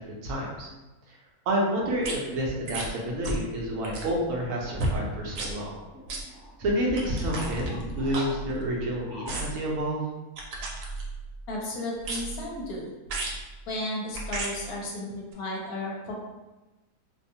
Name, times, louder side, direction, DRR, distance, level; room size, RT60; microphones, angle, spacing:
voice 1, 0.2-0.7 1.5-5.8 6.6-7.7 7.9-10.0, equal, 65° right, -2 dB, 0.9 m, -29 dB
sound 1, 2.0-2.1 2.7-2.9 3.2-3.5 3.8-4.2 4.8-5.0 5.3-5.5 6.1-6.2 6.9-8.8 9.2-9.6 10.4-11.3 12.0-12.5 13.1-13.4 14.1-14.5 15.3-15.4, right 2 dB, 85° right, 1.1 m, -34 dB
sound 2, 4.2-9.5, left 1 dB, 50° left, 0.6 m, -44 dB
voice 2, 11.5-12.9 13.7-16.1, left 1 dB, 70° left, -2 dB, 1.0 m, -34 dB
2.7 x 2.2 x 2.7 m, 1.1 s
omnidirectional pair, 1.7 m